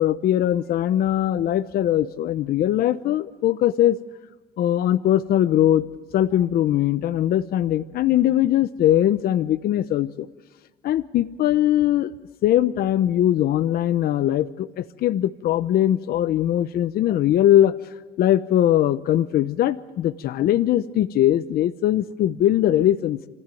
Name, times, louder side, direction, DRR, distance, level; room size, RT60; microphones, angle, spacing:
voice 1, 0.0-4.0 4.6-5.8 6.1-10.3 10.8-12.1 12.4-17.7 18.2-23.2, left 12 dB, 65° left, 12 dB, 0.9 m, -21 dB
26.5 x 15.5 x 9.2 m, 1.3 s
cardioid pair, 110°, 17 cm